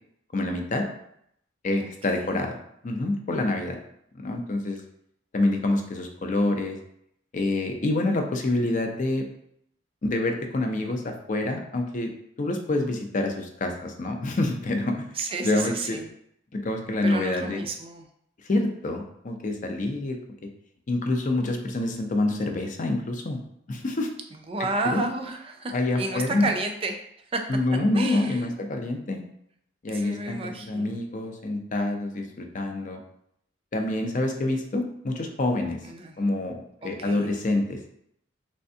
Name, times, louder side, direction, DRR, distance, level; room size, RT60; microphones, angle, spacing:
voice 1, 0.3-0.9 1.6-2.5 2.8-3.8 4.2-4.8 5.3-6.8 7.3-9.2 10.0-12.1 12.4-15.0 15.4-16.0 16.5-17.6 18.5-20.2 20.9-23.4 23.7-24.1 24.8-25.0 25.7-26.5 27.5-29.2 29.8-33.0 33.7-35.8 36.2-36.6 36.8-37.8, left 2 dB, 40° left, 4 dB, 0.5 m, -27 dB
voice 2, 1.8-2.4 15.2-16.1 17.0-18.1 24.3-27.0 27.3-27.4 27.9-28.6 29.9-31.0 35.8-36.2 36.8-37.3, right 3 dB, 30° right, 5 dB, 0.4 m, -32 dB
3.5 x 3.3 x 2.7 m, 0.72 s
head